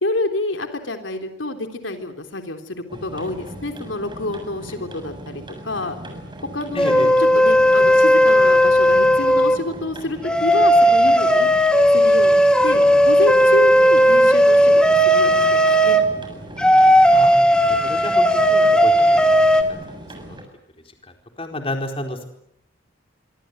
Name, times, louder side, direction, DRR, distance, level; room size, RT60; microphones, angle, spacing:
voice 1, 0.0-6.0 6.5-11.5 11.9-16.0, left 2 dB, 85° left, 6 dB, 3.6 m, -28 dB
sound 1, 2.9-20.4, right 1 dB, 25° right, 7.2 m, -38 dB
voice 2, 6.7-7.1 17.1-19.6 20.2-20.4 21.4-22.2, left 1 dB, 30° left, 4 dB, 4.3 m, -31 dB
sound 2, 6.8-9.6 10.2-16.0 16.6-19.6, equal, 5° left, 2.7 m, -15 dB
25.5 x 25.0 x 8.1 m, 0.75 s
head